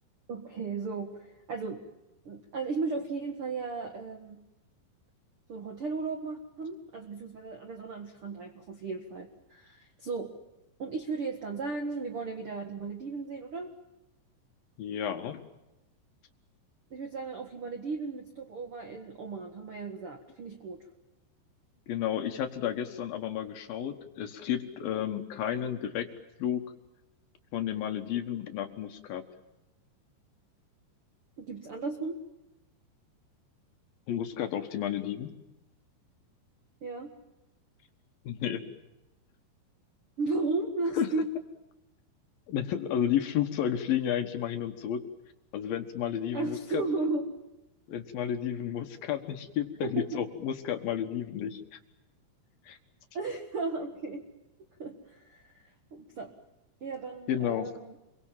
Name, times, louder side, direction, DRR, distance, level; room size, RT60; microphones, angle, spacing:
voice 1, 0.3-1.8 2.2-4.4 5.5-10.3 10.8-13.7 16.9-20.8 31.4-32.2 36.8-37.1 40.2-41.3 46.3-47.4 49.8-50.2 53.1-54.2 54.8-55.6 55.9-56.3 56.8-58.0, right 3 dB, 70° right, 5 dB, 1.2 m, -35 dB
voice 2, 14.8-15.4 21.9-26.1 26.4-26.6 27.5-29.2 34.1-35.3 38.3-38.6 41.0-41.1 42.5-45.0 45.5-46.8 47.9-51.8 52.7-52.8 57.3-57.7, left 10 dB, 65° left, 7 dB, 2.7 m, -32 dB
27.0 x 23.0 x 7.4 m, 0.97 s
omnidirectional pair, 5.4 m